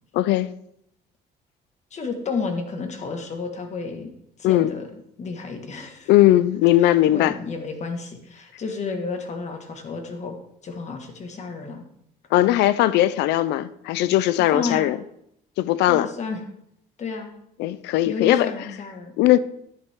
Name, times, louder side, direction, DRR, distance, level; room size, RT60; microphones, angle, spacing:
voice 1, 0.1-0.5 4.4-4.7 6.1-7.3 12.3-15.0 15.6-16.1 17.6-18.5 19.2-19.4, left 14 dB, 85° left, 0.5 m, -19 dB
voice 2, 1.9-4.1 4.4-4.9 5.2-6.1 6.8-10.4 10.6-11.9 14.4-14.9 15.9-16.4 17.0-17.3 18.1-19.1, left 4 dB, 45° left, 1.8 m, -31 dB
11.0 x 8.6 x 3.7 m
cardioid pair, 110°, 17 cm